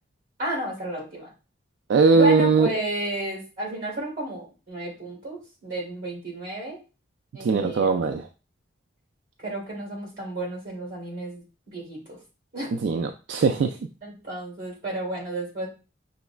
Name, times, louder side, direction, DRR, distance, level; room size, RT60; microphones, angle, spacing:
voice 1, 0.4-1.3 2.1-6.8 7.3-8.0 9.4-12.2 12.5-12.8 14.0-15.7, right 1 dB, 50° right, -2 dB, 2.5 m, -32 dB
voice 2, 1.9-2.7 7.4-8.3 12.7-13.8, right 4 dB, 75° right, 6 dB, 0.3 m, -20 dB
6.1 x 3.0 x 2.3 m, 0.32 s
head